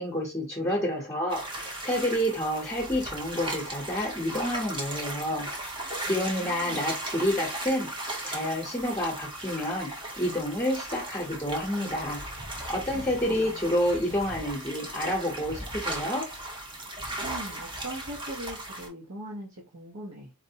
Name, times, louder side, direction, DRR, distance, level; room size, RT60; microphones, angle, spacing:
voice 1, 0.0-5.5 6.0-7.9 8.2-9.9 10.2-12.2 12.7-16.3, equal, 15° left, -4 dB, 0.8 m, -29 dB
sound 1, 1.3-18.9, right 1 dB, 20° right, 0.8 m, -37 dB
voice 2, 6.1-7.0 12.9-13.9 17.2-20.3, right 1 dB, 75° right, -4 dB, 0.9 m, -41 dB
4.1 x 2.1 x 2.7 m, 0.27 s
head